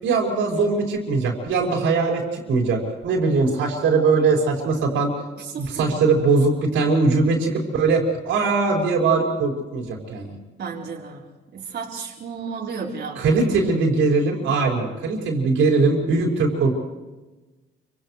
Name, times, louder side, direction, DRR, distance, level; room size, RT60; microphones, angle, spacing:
voice 1, 0.0-5.1 5.6-10.3 13.2-16.7, right 4 dB, 85° right, 0 dB, 5.8 m, -21 dB
voice 2, 5.4-5.7 10.6-11.2 11.5-13.4, right 5 dB, 60° right, -3 dB, 4.3 m, -33 dB
30.0 x 26.5 x 3.4 m, 1.2 s
cardioid pair, 90°, 20 cm